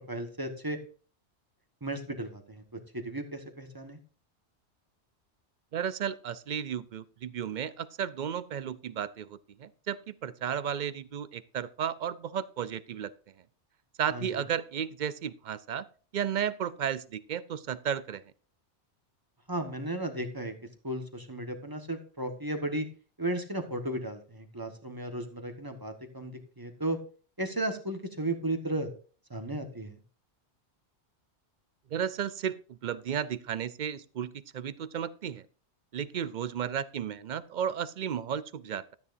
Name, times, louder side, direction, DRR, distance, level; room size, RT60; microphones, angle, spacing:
voice 1, 0.1-0.8 1.8-2.6 2.9-4.0 14.1-14.4 19.5-20.5 20.8-22.9 23.2-27.0 27.4-28.9 29.3-30.0, right 1 dB, 20° right, 6 dB, 1.2 m, -34 dB
voice 2, 5.7-13.1 14.0-15.9 16.1-18.2 31.9-35.4 35.9-38.9, right 8 dB, 55° right, 16 dB, 0.5 m, -33 dB
12.5 x 9.5 x 2.6 m, 0.39 s
omnidirectional pair, 1.2 m